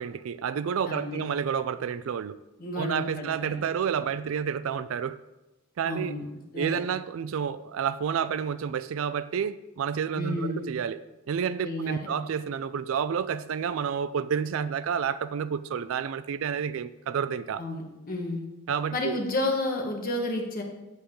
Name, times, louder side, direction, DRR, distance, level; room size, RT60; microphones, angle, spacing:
voice 1, 0.0-2.4 2.8-5.2 5.8-6.2 6.5-11.0 11.3-17.6 18.7-19.2, right 7 dB, 65° right, 15 dB, 0.3 m, -30 dB
voice 2, 0.9-1.2 2.6-3.5 5.8-6.2 6.5-6.8 10.1-10.6 11.6-12.1 17.6-18.4 18.9-20.6, left 1 dB, 40° left, 0 dB, 1.4 m, -31 dB
8.2 x 8.0 x 3.8 m, 1.0 s
head